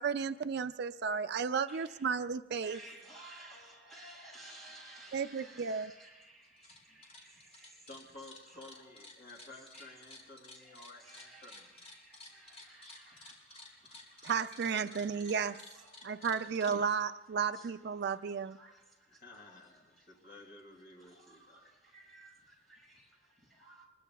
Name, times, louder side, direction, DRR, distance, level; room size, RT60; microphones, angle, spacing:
voice 1, 0.0-2.8 5.1-5.9 14.2-15.6 16.0-18.6, right 6 dB, 60° right, 11 dB, 0.4 m, -33 dB
voice 2, 1.7-2.1 2.6-7.9 8.5-8.8 9.3-16.9 17.5-17.7 18.0-20.4 21.0-23.9, right 1 dB, ahead, -4 dB, 6.1 m, -57 dB
sound 1, 6.5-6.8 7.0-16.8, left 2 dB, 35° left, 3.8 m, -53 dB
voice 3, 7.9-11.8 16.8-16.9 19.1-21.7, left 2 dB, 55° left, 0 dB, 2.6 m, -54 dB
25.5 x 22.0 x 2.3 m, 1.2 s
head